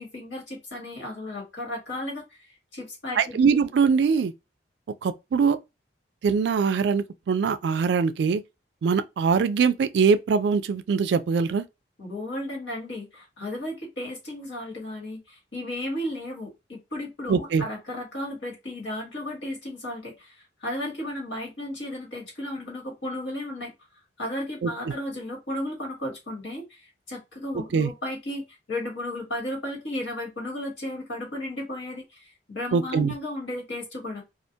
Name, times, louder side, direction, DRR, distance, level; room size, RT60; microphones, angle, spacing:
voice 1, 0.0-2.2 2.7-3.4 12.0-23.7 24.2-34.2, left 1 dB, 80° left, 1.4 m, -34 dB
voice 2, 3.2-4.3 5.0-5.6 6.2-8.4 8.8-11.6 17.3-17.6 24.6-24.7 27.7-27.9 32.7-33.1, right 5 dB, 65° right, 0.3 m, -22 dB
2.5 x 2.1 x 2.6 m
head